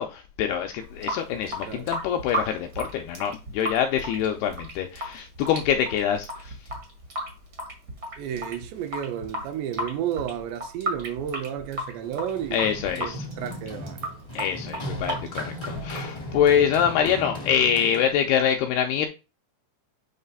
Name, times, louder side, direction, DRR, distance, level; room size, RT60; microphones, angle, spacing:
voice 1, 0.0-6.5 12.5-13.3 14.4-19.1, left 8 dB, 85° left, 2.3 m, -25 dB
Water tap faucet / Sink (filling or washing) / Drip, 0.8-16.7, equal, 65° right, 1.0 m, -35 dB
voice 2, 8.2-14.0, right 9 dB, 80° right, 2.9 m, -32 dB
Run, 12.0-18.4, equal, 25° left, 0.5 m, -37 dB
8.1 x 3.2 x 5.4 m
omnidirectional pair, 5.2 m